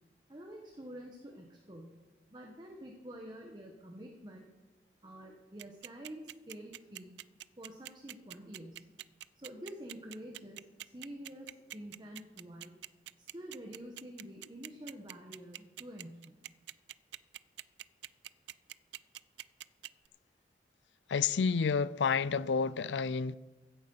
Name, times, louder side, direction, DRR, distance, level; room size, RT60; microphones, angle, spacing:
voice 1, 0.3-2.0 2.3-4.5 5.0-7.1 7.6-8.8 9.3-12.7 13.2-16.4, equal, 25° right, 1.2 m, -48 dB
sound 1, 5.6-20.1, right 14 dB, 80° right, 0.3 m, -45 dB
voice 2, 21.1-23.4, left 5 dB, 90° left, 0.5 m, -30 dB
15.5 x 9.0 x 5.5 m
head